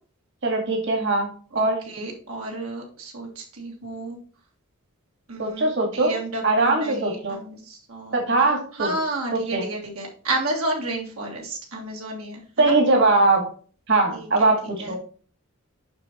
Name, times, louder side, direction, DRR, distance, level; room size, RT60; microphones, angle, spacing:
voice 1, 0.4-1.8 5.4-6.1 6.4-7.4 8.1-8.9 9.3-9.6 12.6-13.4 13.9-14.6 14.9-15.0, right 2 dB, 60° right, 2 dB, 2.0 m, -21 dB
voice 2, 1.5-4.2 5.3-8.2 8.7-12.7 14.1-14.5 14.8-15.0, right 2 dB, 85° right, -1 dB, 2.0 m, -31 dB
6.8 x 5.7 x 4.3 m, 0.41 s
head